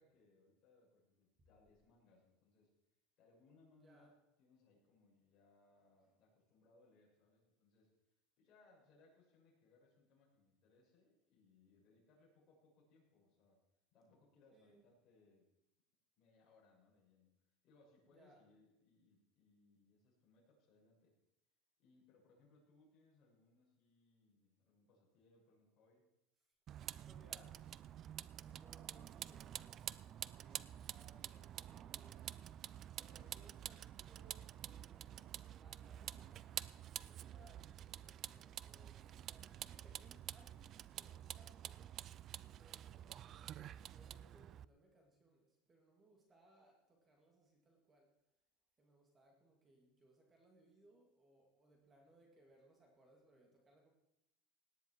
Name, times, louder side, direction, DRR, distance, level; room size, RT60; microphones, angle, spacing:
voice 1, 0.0-2.7 3.2-7.9 8.4-13.6 13.9-15.5 16.2-17.4 17.6-21.2 21.8-26.0, left 3 dB, 40° left, -3 dB, 6.6 m, -71 dB
voice 2, 3.8-4.1 14.5-14.9 18.1-18.4 27.0-27.7 28.4-32.5 33.0-41.9 42.5-48.1 48.8-53.9, right 2 dB, 20° right, 1 dB, 2.4 m, -68 dB
Vehicle, 26.7-44.6, right 11 dB, 40° right, 0.4 m, -49 dB
17.5 x 10.0 x 4.7 m, 0.86 s
supercardioid pair, 135°, 0 cm